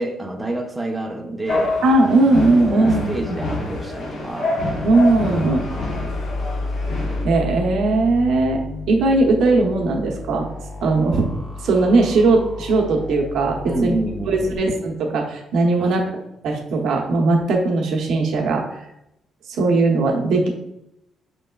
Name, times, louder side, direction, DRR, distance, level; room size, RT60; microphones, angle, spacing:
voice 1, 0.0-1.8 2.7-4.6 5.7-6.1 13.7-14.6 15.8-16.0, right 2 dB, 10° right, 1 dB, 0.7 m, -28 dB
sound 1, 1.5-7.2, left 2 dB, 70° left, 1.0 m, -27 dB
voice 2, 1.8-3.3 4.8-5.6 7.2-8.6 8.9-10.5 10.8-11.3 11.6-13.9 14.3-16.1 16.4-18.7 19.5-20.5, right 2 dB, 80° right, 0 dB, 0.9 m, -18 dB
sound 2, 4.6-14.6, left 2 dB, 25° left, 1.2 m, -32 dB
6.2 x 3.2 x 2.3 m, 0.84 s
cardioid pair, 90°, 0 cm